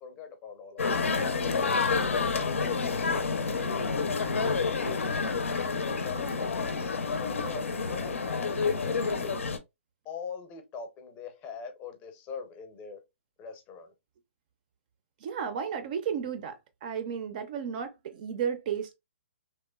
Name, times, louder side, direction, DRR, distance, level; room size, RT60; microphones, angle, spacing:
voice 1, 0.0-5.5 6.0-9.4 10.0-13.0 13.4-13.9, left 6 dB, 20° left, 0.6 m, -43 dB
sound 1, 0.8-9.6, left 4 dB, 85° left, 0.5 m, -29 dB
voice 2, 15.2-18.9, right 7 dB, 40° right, 0.4 m, -33 dB
2.9 x 2.1 x 2.2 m
hypercardioid pair, 145°, 7 cm